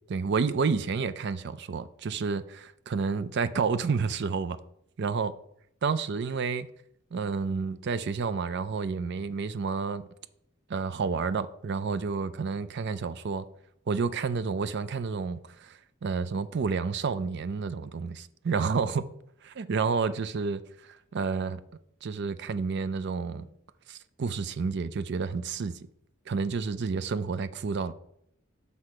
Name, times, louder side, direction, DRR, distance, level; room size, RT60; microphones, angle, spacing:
voice 1, 0.1-4.6 5.0-5.3 5.8-6.7 7.1-10.1 10.7-13.4 13.9-19.1 19.4-21.6 22.0-23.5 23.9-25.8 26.3-27.9, right 5 dB, 55° right, 0.4 m, -30 dB
6.1 x 5.6 x 4.9 m
head